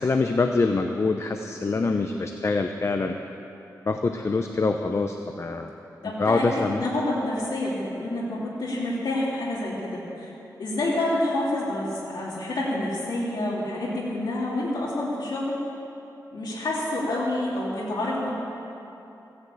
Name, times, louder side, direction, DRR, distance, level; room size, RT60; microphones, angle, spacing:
voice 1, 0.0-3.1 3.9-5.7 6.0-6.8, left 3 dB, 40° left, 5 dB, 0.7 m, -25 dB
voice 2, 6.0-10.3 10.6-15.7 16.3-18.3, left 1 dB, 85° left, -6 dB, 2.7 m, -28 dB
16.0 x 9.7 x 8.4 m, 2.9 s
wide cardioid pair, 100°, 7 cm